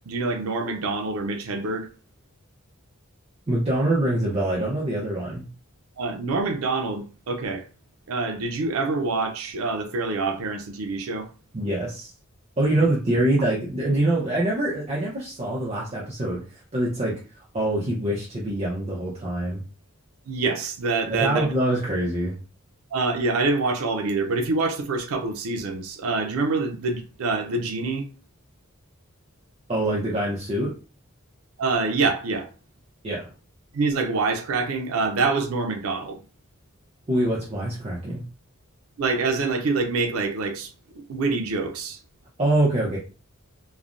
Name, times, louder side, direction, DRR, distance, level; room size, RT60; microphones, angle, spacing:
voice 1, 0.1-1.9 6.0-7.7 8.1-11.3 20.3-21.5 22.9-28.1 31.6-32.5 33.7-36.2 39.0-40.7 41.1-42.0, right 3 dB, 80° right, 0.5 m, -26 dB
voice 2, 3.5-5.5 11.5-12.1 12.6-16.4 16.7-17.2 17.5-19.6 21.1-22.3 29.7-30.7 33.0-33.3 37.1-38.2 42.4-43.0, right 1 dB, 30° right, 0.6 m, -24 dB
3.1 x 2.0 x 2.5 m
head